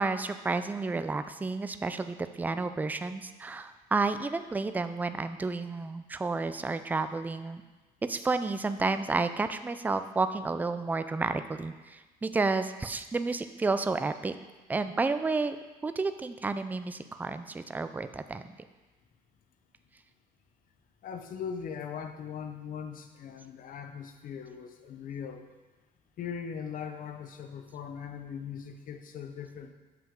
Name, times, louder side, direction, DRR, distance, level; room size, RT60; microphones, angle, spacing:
voice 1, 0.0-7.6 8.0-14.4 14.7-15.6 15.8-18.5, right 3 dB, 10° right, 10 dB, 0.3 m, -31 dB
voice 2, 21.0-25.5 26.2-29.7, left 7 dB, 55° left, 7 dB, 0.7 m, -40 dB
7.4 x 5.8 x 3.6 m, 1.2 s
cardioid pair, 110°, 17 cm